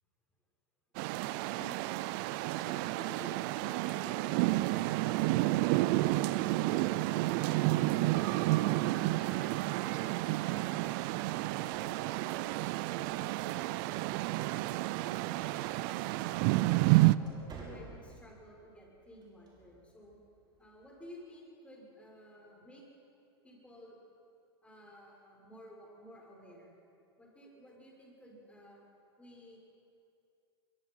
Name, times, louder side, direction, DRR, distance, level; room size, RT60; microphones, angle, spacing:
sound 1, 1.0-17.2, right 19 dB, 50° right, 0.6 m, -30 dB
voice 1, 1.5-6.3 6.6-7.8 8.3-11.0 11.5-14.5 14.9-16.1 16.6-20.2 20.6-22.8 23.4-24.0 24.6-26.8 27.2-28.8 29.2-29.6, equal, 10° left, -2 dB, 6.9 m, -53 dB
sound 2, 13.1-21.1, right 3 dB, 30° right, 5.4 m, -57 dB
24.0 x 22.0 x 5.9 m, 2.6 s
hypercardioid pair, 100°, 14 cm